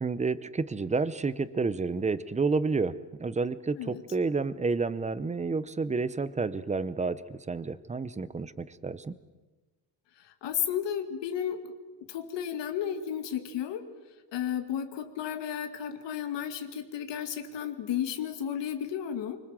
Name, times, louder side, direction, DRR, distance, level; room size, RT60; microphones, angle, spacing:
voice 1, 0.0-9.1, right 4 dB, 15° right, 15 dB, 0.8 m, -30 dB
voice 2, 10.4-11.7 12.1-13.9 14.3-19.4, left 9 dB, 75° left, 7 dB, 2.3 m, -33 dB
25.5 x 25.0 x 7.6 m, 1.2 s
cardioid pair, 160°, 43 cm